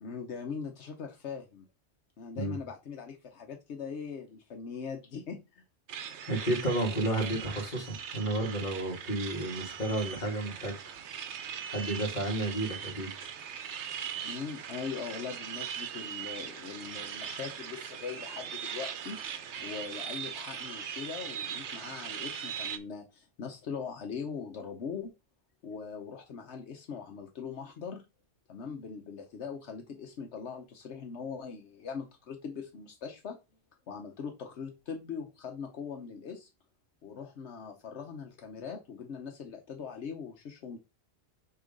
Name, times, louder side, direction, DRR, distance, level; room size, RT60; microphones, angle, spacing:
voice 1, 0.0-1.7 2.2-5.6 14.2-19.2 19.6-25.1 25.6-28.0 28.5-33.4 33.9-36.5 37.0-40.8, left 6 dB, 80° left, 1.2 m, -41 dB
sound 1, 5.9-22.8, right 8 dB, 85° right, 1.0 m, -40 dB
voice 2, 6.3-10.8 11.7-13.3, right 1 dB, 45° left, 2.0 m, -32 dB
6.4 x 3.0 x 5.2 m
omnidirectional pair, 1.1 m